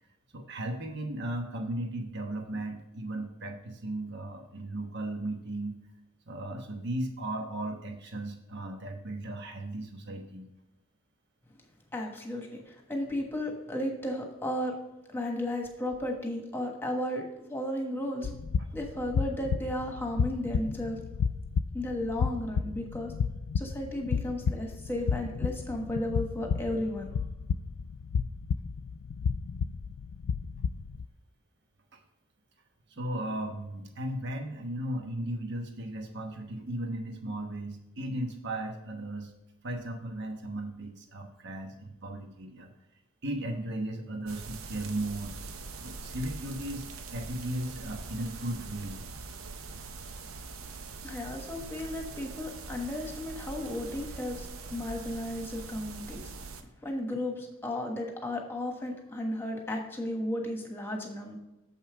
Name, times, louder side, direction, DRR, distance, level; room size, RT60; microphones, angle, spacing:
voice 1, 0.3-5.8 6.3-10.5 31.9-32.0 32.9-39.3 39.6-42.7 43.2-45.3 45.8-46.8 47.1-49.0, right 1 dB, 55° right, 4 dB, 1.1 m, -36 dB
voice 2, 11.9-14.7 15.1-17.2 17.5-18.3 18.7-21.0 21.7-23.1 23.5-27.1 51.0-56.3 56.8-61.4, left 1 dB, 10° left, 2 dB, 1.3 m, -34 dB
sound 1, 18.2-31.1, left 6 dB, 75° left, 0.3 m, -32 dB
sound 2, 44.3-56.6, right 3 dB, 80° right, 0.7 m, -43 dB
7.5 x 5.6 x 4.6 m, 0.95 s
head